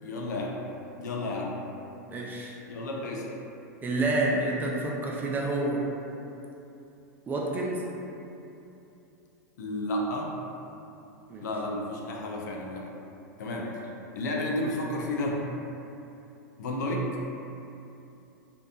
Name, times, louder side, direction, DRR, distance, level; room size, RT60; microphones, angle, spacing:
voice 1, 0.0-0.5 1.0-1.6 2.7-3.3 9.6-10.3 11.4-12.9 13.4-13.7 14.2-15.4 16.6-17.1, left 1 dB, 75° left, -1 dB, 0.4 m, -31 dB
voice 2, 2.1-2.6 3.8-5.9 7.3-7.8 11.3-11.5, right 2 dB, 20° right, -3 dB, 0.4 m, -28 dB
2.7 x 2.3 x 2.3 m, 2.8 s
hypercardioid pair, 105°, 9 cm